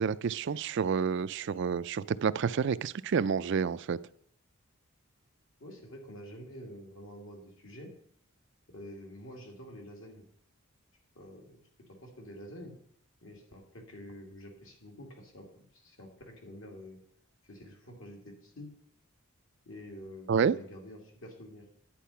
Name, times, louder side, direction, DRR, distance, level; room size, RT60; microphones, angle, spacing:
voice 1, 0.0-4.0 20.3-20.6, right 6 dB, 55° right, 16 dB, 0.4 m, -29 dB
voice 2, 5.6-7.9 8.7-10.3 11.1-11.6 12.0-12.7 13.2-15.5 15.7-17.0 17.4-18.7 19.6-21.7, equal, 70° left, 1 dB, 2.8 m, -48 dB
10.5 x 9.1 x 5.7 m, 0.65 s
head